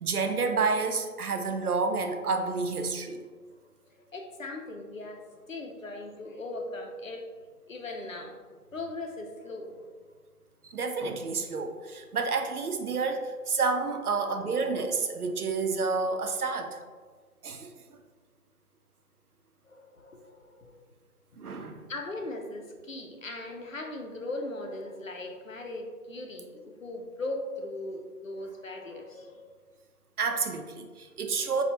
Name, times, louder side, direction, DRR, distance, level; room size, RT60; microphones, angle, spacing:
voice 1, 0.0-3.2 10.6-16.8 17.4-17.7 21.4-21.8 30.2-31.6, right 4 dB, 70° right, 5 dB, 0.6 m, -29 dB
voice 2, 4.1-7.3 7.7-8.4 8.7-9.8 19.6-20.8 21.9-29.6 31.4-31.5, left 2 dB, 60° left, 3 dB, 0.6 m, -39 dB
4.5 x 2.3 x 2.7 m, 1.5 s
figure-of-eight pair, 170°, 46 cm